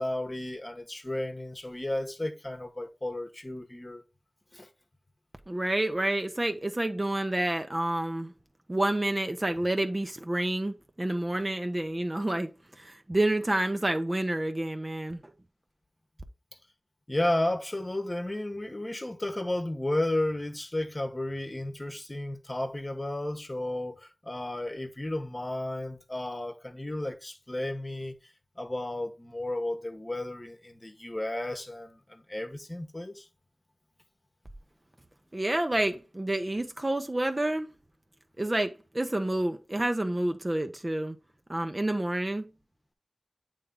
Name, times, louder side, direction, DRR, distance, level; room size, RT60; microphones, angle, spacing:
voice 1, 0.0-4.0 4.5-4.7 17.1-28.2 28.6-33.3, left 1 dB, 30° left, 1.1 m, -33 dB
voice 2, 5.5-8.3 8.7-12.5 12.8-15.2 35.3-37.7 38.4-41.2 41.5-42.5, right 1 dB, 30° right, 0.7 m, -29 dB
8.3 x 3.4 x 3.7 m
wide cardioid pair, 60°, 0 cm